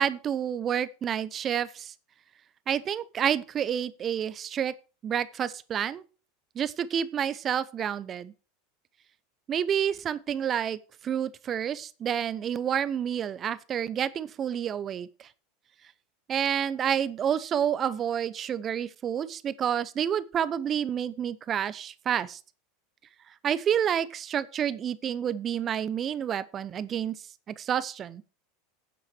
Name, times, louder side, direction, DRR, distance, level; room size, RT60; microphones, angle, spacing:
voice 1, 0.0-1.9 2.7-4.7 5.0-6.0 6.5-8.3 9.5-15.3 16.3-22.4 23.4-27.2 27.5-28.2, right 9 dB, 35° right, 0.8 m, -29 dB
9.3 x 7.6 x 6.2 m
hypercardioid pair, 85°, 0 cm